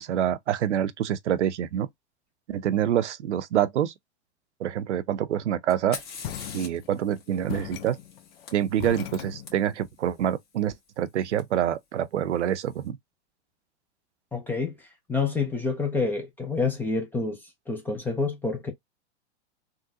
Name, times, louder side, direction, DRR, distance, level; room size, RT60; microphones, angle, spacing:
voice 1, 0.0-1.9 2.5-3.9 4.6-6.0 6.5-8.0 8.5-13.0, right 10 dB, 85° right, 0.6 m, -26 dB
Fire, 5.7-9.5 11.4-11.5 12.3-12.7, left 5 dB, 30° left, 1.4 m, -44 dB
sound 1, 6.2-7.1 7.5-9.9, left 12 dB, 60° left, 0.6 m, -38 dB
voice 2, 14.3-14.7 15.1-17.4 17.7-18.7, left 4 dB, 5° left, 0.3 m, -27 dB
3.7 x 2.2 x 2.6 m
hypercardioid pair, 130°, 34 cm